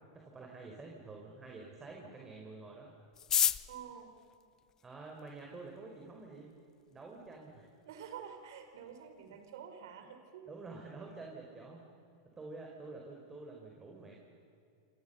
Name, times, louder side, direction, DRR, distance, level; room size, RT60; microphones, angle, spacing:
voice 1, 0.0-2.9 4.8-6.5 6.9-7.7 10.5-11.8 12.4-14.2, right 3 dB, 20° right, 0 dB, 4.6 m, -48 dB
sound 1, 3.1-5.4 6.2-6.3 6.5-6.6 6.9-7.3 7.7-7.8 7.9-8.4 8.7-8.9 9.2-9.5, left 8 dB, 25° left, 0.8 m, -33 dB
voice 2, 3.7-4.1 7.8-10.5, right 8 dB, 70° right, 7 dB, 4.8 m, -48 dB
27.5 x 26.5 x 7.0 m, 2.6 s
hypercardioid pair, 110°, 2 cm